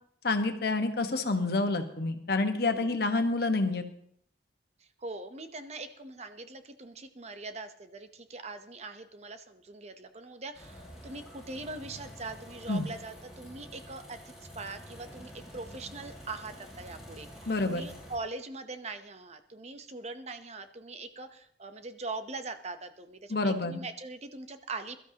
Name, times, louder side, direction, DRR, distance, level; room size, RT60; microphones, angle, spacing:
voice 1, 0.2-3.8 12.7-12.9 17.5-17.8 23.3-23.8, left 3 dB, 60° left, 6 dB, 1.3 m, -28 dB
voice 2, 2.6-3.0 4.8-25.0, right 3 dB, 40° right, 9 dB, 0.8 m, -42 dB
sound 1, 10.5-18.2, equal, 5° right, 5.4 m, -48 dB
22.0 x 12.5 x 2.9 m, 0.67 s
head